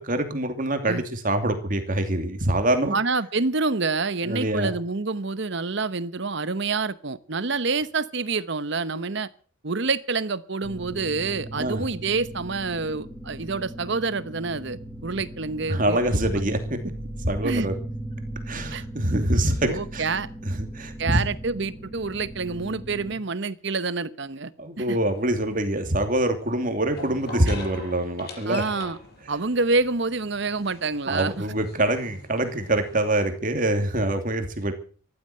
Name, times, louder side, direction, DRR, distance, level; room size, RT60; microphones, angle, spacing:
voice 1, 0.0-3.0 4.2-4.7 11.6-11.8 15.7-16.6 17.2-17.7 18.5-20.0 20.4-21.2 24.6-28.6 31.1-34.7, right 1 dB, 40° right, 6 dB, 2.8 m, -25 dB
voice 2, 2.9-9.3 9.6-16.0 16.3-16.5 17.4-17.7 18.7-18.8 19.6-20.3 21.0-25.0 28.5-29.0 29.3-31.4, right 4 dB, 55° right, 15 dB, 1.0 m, -27 dB
sound 1, 10.6-23.2, right 1 dB, 5° left, 1.5 m, -38 dB
sound 2, 24.8-33.3, left 1 dB, 50° left, 6.0 m, -43 dB
15.0 x 12.0 x 7.8 m, 0.42 s
head